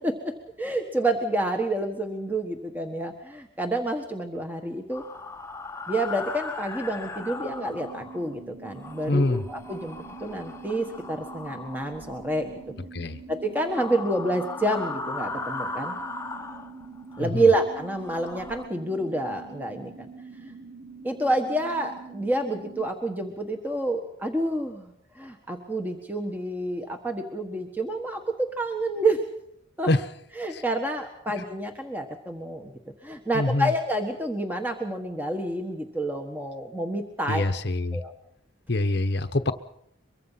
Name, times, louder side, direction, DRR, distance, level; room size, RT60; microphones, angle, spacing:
voice 1, 0.0-5.0 5.9-12.5 13.3-15.9 17.2-20.1 20.4-20.5 21.0-29.2 29.8-29.9 30.4-32.7 33.0-37.5 37.9-38.1, right 1 dB, 10° right, 4 dB, 1.4 m, -28 dB
sound 1, 4.9-8.3 8.7-12.7 13.6-17.2 17.7-18.7, left 3 dB, 15° left, 1.0 m, -38 dB
sound 2, 7.2-22.9, right 4 dB, 85° right, 2.2 m, -45 dB
voice 2, 9.1-9.4 12.9-13.2 17.2-17.5 29.9-30.0 30.5-30.6 33.3-33.7 37.3-38.0 38.7-39.5, left 2 dB, 55° left, 9 dB, 1.0 m, -25 dB
23.5 x 23.5 x 5.8 m, 0.74 s
head